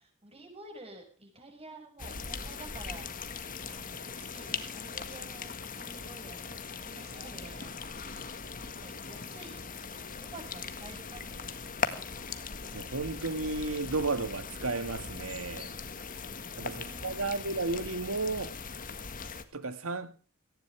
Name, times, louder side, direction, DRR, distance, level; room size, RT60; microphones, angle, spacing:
voice 1, 0.0-3.4 3.7-8.2 8.6-11.9 16.5-17.4, right 2 dB, 30° right, 6.2 m, -51 dB
sound 1, 2.0-19.4, left 5 dB, 40° left, 1.7 m, -40 dB
voice 2, 12.7-15.7 16.6-18.5 19.5-20.1, right 3 dB, 80° right, 2.0 m, -33 dB
18.0 x 16.0 x 3.4 m
head